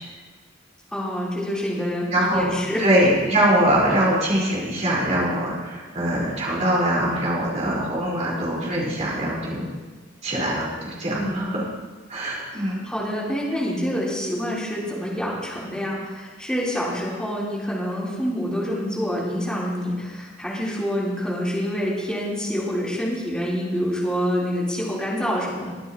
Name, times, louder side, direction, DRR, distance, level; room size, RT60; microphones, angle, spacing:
voice 1, 0.9-2.9 11.1-11.5 12.5-25.7, equal, 5° left, -7 dB, 3.6 m, -27 dB
voice 2, 2.1-2.5 2.8-9.6 10.2-11.6 12.1-12.8, right 1 dB, 40° right, -6 dB, 4.6 m, -22 dB
22.5 x 9.7 x 3.0 m, 1.3 s
head